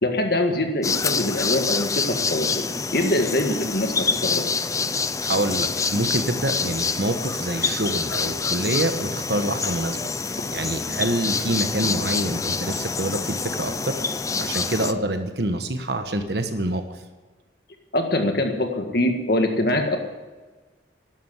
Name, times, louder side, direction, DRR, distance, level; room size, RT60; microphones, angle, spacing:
voice 1, 0.0-2.6 2.9-4.4 17.9-20.0, left 1 dB, 55° left, 4 dB, 1.8 m, -23 dB
sound 1, 0.8-14.9, left 4 dB, 15° left, 0.5 m, -26 dB
voice 2, 5.2-13.9 14.4-16.8, right 1 dB, 60° right, 6 dB, 1.3 m, -26 dB
12.5 x 12.0 x 8.1 m, 1.3 s
head